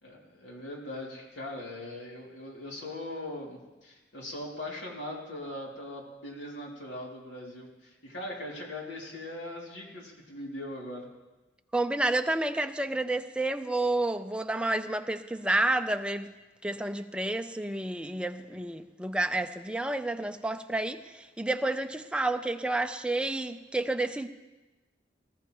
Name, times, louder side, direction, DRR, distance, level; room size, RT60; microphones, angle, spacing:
voice 1, 0.0-11.1, left 1 dB, 80° left, -2 dB, 2.8 m, -40 dB
voice 2, 11.7-16.3 16.6-24.3, right 2 dB, 5° right, 7 dB, 0.4 m, -30 dB
19.5 x 14.0 x 3.0 m, 1.1 s
head